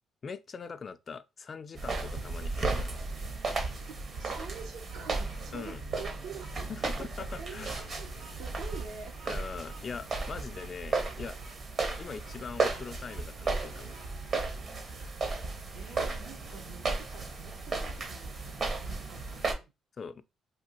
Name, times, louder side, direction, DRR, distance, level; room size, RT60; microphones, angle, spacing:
voice 1, 0.2-3.0 5.5-5.8 6.7-7.9 9.3-11.4 12.0-14.0 20.0-20.2, left 5 dB, 45° left, 0.3 m, -42 dB
sound 1, 1.7-19.5, right 3 dB, 50° right, 0.7 m, -35 dB
Bird vocalization bird call bird song, 3.8-14.1, right 3 dB, 65° right, 1.6 m, -56 dB
voice 2, 3.9-7.6 8.0-8.1 8.4-9.2 15.7-19.4, right 6 dB, 85° right, 0.8 m, -47 dB
3.3 x 2.3 x 2.8 m
cardioid pair, 90°, 0 cm